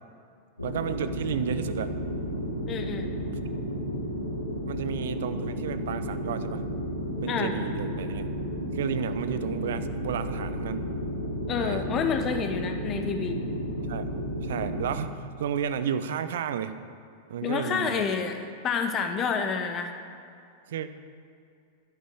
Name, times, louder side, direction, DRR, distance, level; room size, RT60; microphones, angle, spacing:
sound 1, 0.6-14.9, equal, 85° left, 1.9 m, -32 dB
voice 1, 0.6-1.9 4.7-6.6 7.2-8.3 8.7-10.9 11.6-11.8 13.9-14.1 14.4-16.8 17.3-18.1 20.7-20.9, right 8 dB, 60° right, 11 dB, 0.7 m, -32 dB
voice 2, 2.7-3.1 7.3-7.6 11.5-13.4 17.4-19.9, left 6 dB, 30° left, 6 dB, 1.4 m, -29 dB
12.5 x 10.5 x 6.5 m, 2.4 s
figure-of-eight pair, 90°, 0 cm